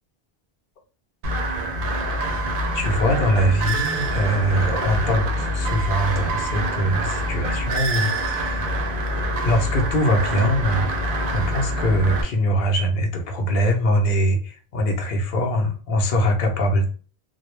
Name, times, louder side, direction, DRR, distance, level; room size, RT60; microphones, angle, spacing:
sound 1, 1.2-12.2, right 1 dB, 65° right, 0.7 m, -25 dB
voice 1, 1.8-2.4 2.7-8.7 9.4-11.0 11.3-16.9, equal, 60° left, 2 dB, 0.7 m, -22 dB
2.2 x 2.0 x 3.0 m, 0.40 s
omnidirectional pair, 1.0 m